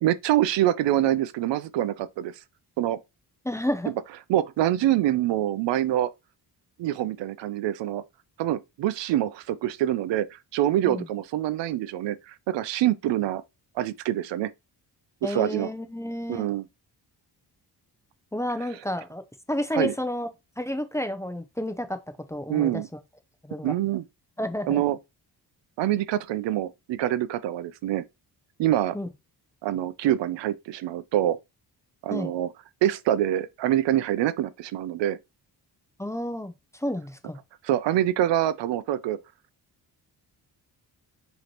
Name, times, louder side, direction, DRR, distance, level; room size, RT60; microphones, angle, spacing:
voice 1, 0.0-2.3 2.8-3.0 4.3-6.1 6.8-8.0 8.4-13.4 13.8-14.5 15.2-15.7 16.3-16.7 19.7-19.9 22.5-22.9 23.6-24.0 24.7-25.0 25.8-28.0 28.6-28.9 29.6-31.4 32.0-32.5 32.8-35.2 37.6-39.2, right 12 dB, 90° right, 0.5 m, -25 dB
voice 2, 3.4-3.9 10.9-11.0 15.2-16.5 18.3-19.2 19.5-20.3 20.6-22.0 22.3-22.7 23.4-23.7 24.4-24.8 28.9-29.1 32.1-32.3 36.0-37.4, left 1 dB, 5° left, 0.5 m, -30 dB
5.0 x 3.0 x 2.9 m
cardioid pair, 105°, 42 cm